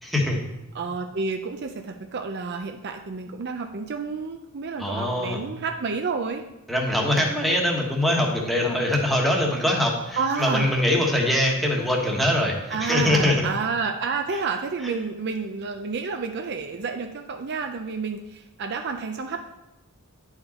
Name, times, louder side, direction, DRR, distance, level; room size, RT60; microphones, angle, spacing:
voice 1, 0.0-0.4 4.8-5.4 6.7-13.4 14.8-14.9, left 1 dB, ahead, -2 dB, 1.3 m, -23 dB
voice 2, 0.7-6.4 10.2-10.7 12.7-19.5, right 4 dB, 50° right, 5 dB, 0.5 m, -30 dB
9.9 x 4.8 x 4.2 m, 0.95 s
head